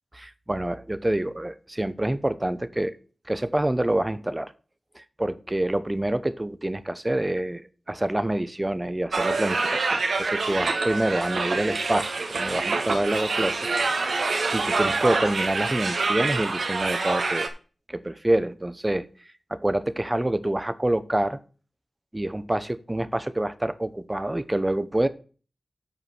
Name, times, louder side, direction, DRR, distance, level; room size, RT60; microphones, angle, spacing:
voice 1, 0.2-2.9 3.3-4.5 5.0-7.6 7.9-13.6 14.5-17.5 17.9-19.0 19.5-21.4 22.1-25.1, right 1 dB, 20° right, 13 dB, 0.8 m, -27 dB
sound 1, 9.1-17.5, right 3 dB, 80° right, 1.5 m, -26 dB
8.2 x 4.9 x 7.1 m, 0.37 s
wide cardioid pair, 95°, 0 cm